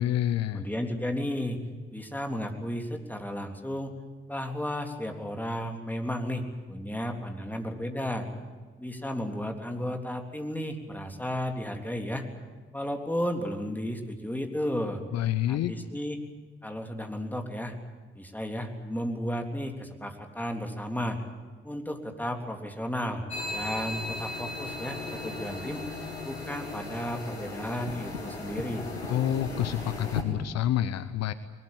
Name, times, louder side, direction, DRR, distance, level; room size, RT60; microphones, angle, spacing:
voice 1, 0.0-0.7 15.1-15.7 29.1-31.3, left 11 dB, 55° left, 13 dB, 0.8 m, -28 dB
voice 2, 0.5-1.6 1.9-3.9 4.3-8.3 8.8-12.2 12.7-15.0 15.5-16.2 16.6-17.7 18.1-21.2 21.6-23.2 23.5-25.8 26.2-28.9, equal, 5° left, 3 dB, 3.5 m, -33 dB
sound 1, 23.3-30.2, left 2 dB, 85° left, 2.0 m, -36 dB
21.0 x 20.0 x 9.1 m, 1.4 s
figure-of-eight pair, 40°, 31 cm